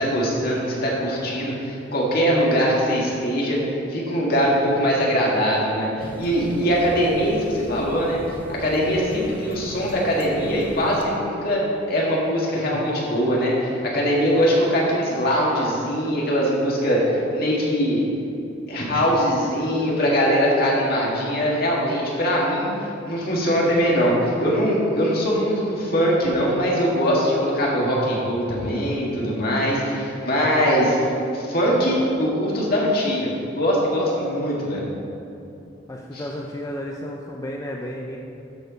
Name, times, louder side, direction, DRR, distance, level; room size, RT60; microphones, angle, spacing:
voice 1, 0.0-3.6 3.9-8.2 8.5-18.0 18.7-22.7 23.0-34.9 36.1-36.2, equal, 55° left, -4 dB, 2.1 m, -22 dB
sound 1, 6.0-11.0, equal, 10° right, 0.8 m, -38 dB
voice 2, 35.9-38.2, equal, 20° left, 0 dB, 0.5 m, -32 dB
13.0 x 4.5 x 5.2 m, 2.9 s
head